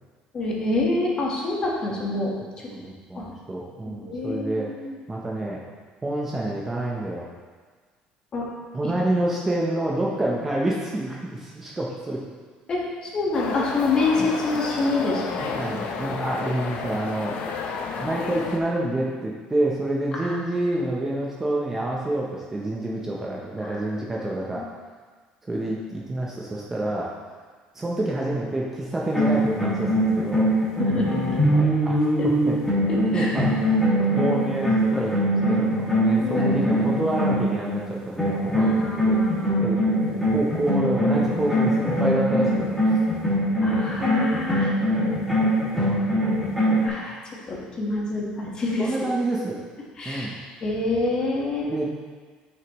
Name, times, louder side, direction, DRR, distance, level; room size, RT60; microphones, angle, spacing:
voice 1, 0.3-2.4 3.1-3.3 3.8-5.0 8.3-8.5 8.8-8.9 12.7-15.6 16.0-16.2 17.3-17.4 20.1-20.4 23.6-23.9 24.4-24.6 30.8-31.4 32.2-32.3 32.9-33.3 36.2-36.5 38.6-39.7 43.6-44.7 46.8-47.1 47.5-48.9 50.0-50.3 50.6-51.7, left 2 dB, 30° left, -3 dB, 1.5 m, -27 dB
voice 2, 2.7-4.7 5.1-5.6 6.0-7.3 8.7-12.2 14.2-14.3 15.4-17.3 18.0-24.6 25.4-27.1 27.7-30.5 31.5-32.6 33.1-33.6 34.0-39.2 39.6-43.0 43.5-44.1 45.7-46.6 48.8-49.6 50.0-50.3 51.7-51.9, right 1 dB, 15° right, -3 dB, 0.7 m, -28 dB
sound 1, 13.3-18.6, left 5 dB, 55° left, 0.7 m, -31 dB
sound 2, 29.0-37.8 38.2-46.9, equal, 5° left, 2.2 m, -22 dB
9.3 x 6.0 x 3.1 m, 1.5 s
cardioid pair, 160°, 3 cm